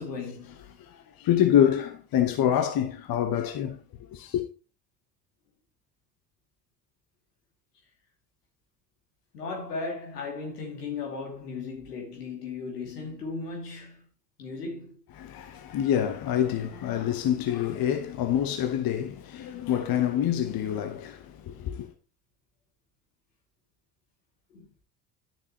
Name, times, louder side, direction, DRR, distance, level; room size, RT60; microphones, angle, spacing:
voice 1, 0.0-0.8 9.3-14.0 14.4-15.0 24.5-24.7, left 4 dB, 90° left, 2.6 m, -36 dB
voice 2, 0.8-3.8 4.1-4.4 15.2-21.9, left 10 dB, 50° left, 1.1 m, -26 dB
10.0 x 6.6 x 3.0 m
hypercardioid pair, 65°, 46 cm